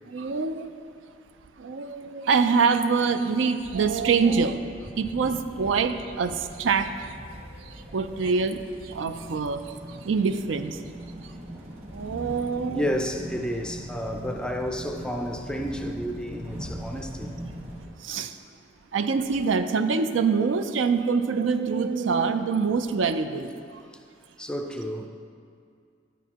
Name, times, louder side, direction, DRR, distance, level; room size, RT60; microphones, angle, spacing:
voice 1, 0.1-0.7 1.6-4.7 5.0-7.1 7.7-10.8 11.9-13.1 18.0-18.4 18.9-23.8, right 5 dB, 80° right, 9 dB, 0.4 m, -25 dB
sound 1, 3.6-17.9, equal, 35° right, 1.3 m, -41 dB
voice 2, 12.7-17.3 24.4-25.1, equal, 5° left, 4 dB, 0.4 m, -31 dB
10.0 x 9.2 x 2.9 m, 2.3 s
head